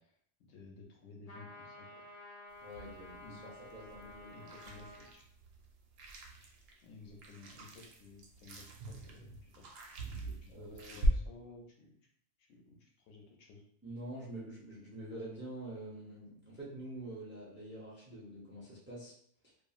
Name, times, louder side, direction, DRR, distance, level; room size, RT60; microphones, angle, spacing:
voice 1, 0.4-2.0 3.2-3.4 4.3-5.2 6.8-9.7 10.1-11.9 12.4-13.6, left 3 dB, 70° left, 0 dB, 0.9 m, -55 dB
sound 1, 1.3-5.1, left 1 dB, 35° left, 0.7 m, -52 dB
sound 2, 2.5-11.1, right 1 dB, 75° right, 0.9 m, -47 dB
voice 2, 2.6-4.3 10.5-11.2 13.8-19.1, right 1 dB, 15° right, -6 dB, 0.4 m, -46 dB
2.9 x 2.4 x 2.3 m, 0.68 s
omnidirectional pair, 1.4 m